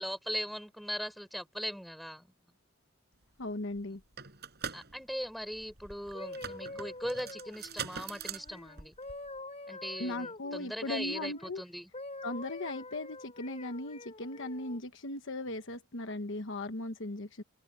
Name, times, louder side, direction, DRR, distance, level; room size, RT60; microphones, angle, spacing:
voice 1, 0.0-2.3 4.7-8.9 9.7-11.9, equal, ahead, 7.1 m, -39 dB
voice 2, 3.4-4.0 10.0-11.6 12.2-17.4, left 2 dB, 55° left, 1.2 m, -38 dB
sound 1, 3.4-3.5 3.7-9.4, right 7 dB, 50° right, 5.7 m, -43 dB
sound 2, 6.0-11.5 11.9-14.8 15.5-15.7, left 2 dB, 30° left, 5.1 m, -46 dB
open air
head